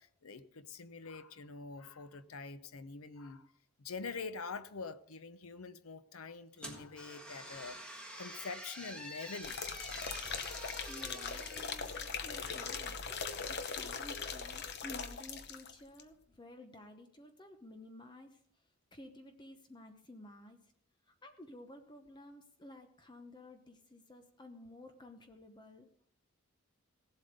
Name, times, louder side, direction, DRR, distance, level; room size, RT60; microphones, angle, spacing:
voice 1, 0.0-3.5 3.8-9.6, left 4 dB, 80° left, 0.8 m, -45 dB
sound 1, 6.6-12.7, equal, 5° left, 1.7 m, -48 dB
sound 2, 9.4-15.7 16.0-16.1, left 5 dB, 50° left, 0.9 m, -40 dB
voice 2, 10.9-11.9 12.2-18.4 18.9-20.6 21.2-25.9, left 1 dB, 20° left, 0.9 m, -53 dB
16.5 x 7.9 x 5.1 m
head